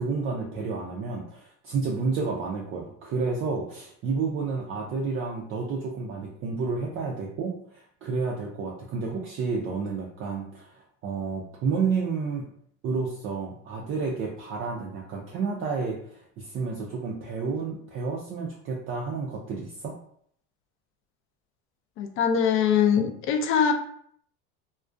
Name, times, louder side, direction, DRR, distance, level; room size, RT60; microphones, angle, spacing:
voice 1, 0.0-12.5 12.8-20.0, right 4 dB, 35° right, -2 dB, 0.4 m, -30 dB
voice 2, 22.0-23.7, left 7 dB, 35° left, 5 dB, 0.4 m, -22 dB
2.4 x 2.1 x 2.4 m, 0.65 s
supercardioid pair, 105°, 36 cm